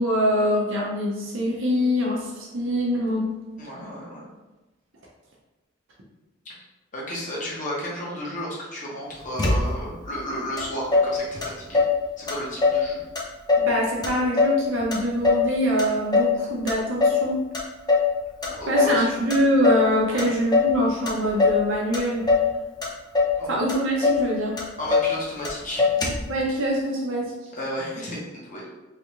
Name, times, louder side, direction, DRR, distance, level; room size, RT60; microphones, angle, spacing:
voice 1, 0.0-3.3 13.7-17.4 18.7-22.2 23.5-24.5 26.3-27.3, equal, 70° right, -3 dB, 0.7 m, -24 dB
voice 2, 3.6-4.3 6.4-6.5 6.9-11.8 12.2-13.0 18.4-19.0 20.1-20.3 23.3-23.5 24.8-25.9 27.5-28.7, equal, 40° left, -5 dB, 1.0 m, -33 dB
Motor vehicle (road), 9.4-10.0 10.6-10.7 10.9-12.0 12.3-12.9 13.2-13.7 14.0-15.5 15.8-16.4 16.7-17.3 17.5-18.1 18.4-19.0 19.3-19.9 20.2-20.8 21.1-21.6 21.9-22.5 22.8-23.4 23.7-23.8 24.0-24.3 24.6-25.1 25.4-25.5 25.8-26.3, left 4 dB, 20° left, 0.5 m, -21 dB
3.3 x 2.4 x 2.9 m, 1.1 s
head